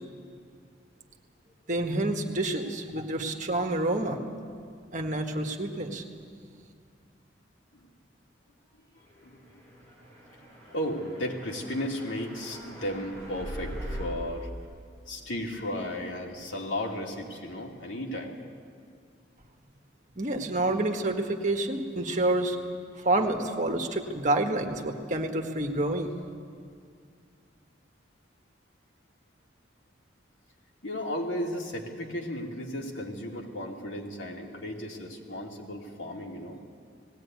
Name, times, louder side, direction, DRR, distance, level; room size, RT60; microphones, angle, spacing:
voice 1, 1.7-4.2 4.9-6.0 20.2-22.6 23.0-26.1, right 2 dB, 40° right, 4 dB, 1.6 m, -28 dB
voice 2, 9.2-9.9 10.7-14.5 15.1-18.4 30.8-36.6, left 1 dB, 85° left, 0 dB, 2.9 m, -35 dB
sound 1, 9.6-14.0, equal, 20° left, 5.2 m, -42 dB
19.0 x 17.0 x 9.4 m, 2.2 s
head